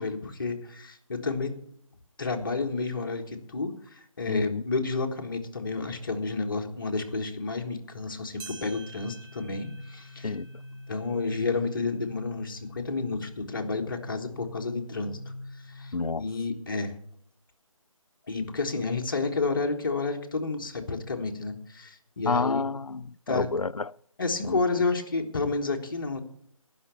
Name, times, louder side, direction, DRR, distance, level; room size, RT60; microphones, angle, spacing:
voice 1, 0.0-1.5 2.2-10.3 10.9-15.2 15.5-16.9 18.3-22.6 23.3-23.5 24.2-26.2, left 3 dB, 40° left, 1.6 m, -30 dB
voice 2, 4.3-4.6 10.2-10.5 15.9-16.3 22.3-23.9 24.4-24.6, left 4 dB, 80° left, 0.5 m, -29 dB
sound 1, 8.4-13.0 13.5-13.6 14.4-14.5 15.5-15.6, right 4 dB, 40° right, 2.8 m, -50 dB
sound 2, 9.0-15.9, left 1 dB, 20° left, 5.6 m, -45 dB
17.5 x 6.1 x 7.0 m
figure-of-eight pair, 155°, 18 cm